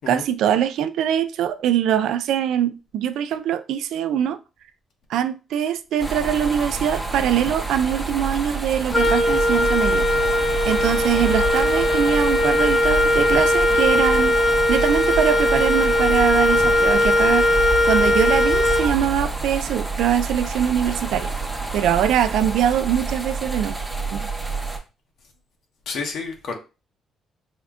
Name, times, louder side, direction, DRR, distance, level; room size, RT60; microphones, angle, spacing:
voice 1, 0.1-4.4 5.1-10.1 10.7-14.4 14.7-17.5 17.9-21.3 21.7-23.8 24.1-24.3, right 10 dB, 80° right, 0.3 m, -22 dB
sound 1, 6.0-24.8, right 3 dB, 10° right, 0.8 m, -29 dB
Wind instrument woodwind instrument, 8.9-19.3, left 1 dB, 10° left, 1.0 m, -19 dB
voice 2, 25.9-26.5, left 4 dB, 70° left, 0.8 m, -30 dB
3.6 x 2.1 x 3.5 m
cardioid pair, 90°, 0 cm